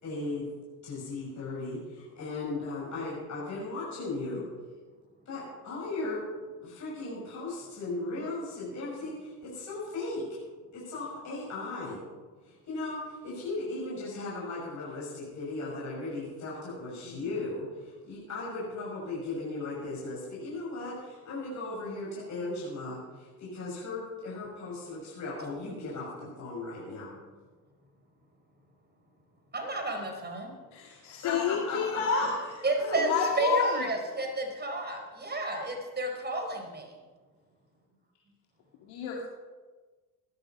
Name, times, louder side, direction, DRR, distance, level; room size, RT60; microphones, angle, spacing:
voice 1, 0.0-0.4 0.8-4.5 5.3-6.2 6.6-10.2 10.7-12.0 12.4-27.1 31.2-32.3 32.8-33.1, left 2 dB, 40° left, -6 dB, 6.3 m, -37 dB
voice 2, 29.5-30.5 32.6-33.1 33.4-36.9, right 3 dB, 25° right, 3 dB, 4.7 m, -31 dB
voice 3, 30.7-32.4 33.0-33.9 38.8-39.2, left 6 dB, 65° left, -1 dB, 2.3 m, -29 dB
16.5 x 12.0 x 5.4 m, 1.4 s
hypercardioid pair, 75°, 42 cm